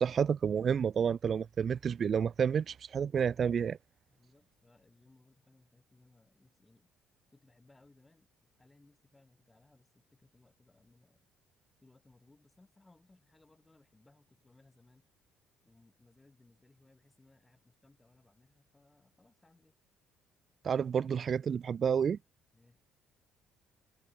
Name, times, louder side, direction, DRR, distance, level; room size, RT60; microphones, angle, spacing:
voice 1, 0.0-3.8 20.6-22.2, right 7 dB, 50° right, 0.3 m, -30 dB
voice 2, 4.1-6.9 7.3-11.3 11.8-15.1 15.6-19.7 22.5-22.8, left 2 dB, 15° left, 6.6 m, -65 dB
supercardioid pair, 75°, 0 cm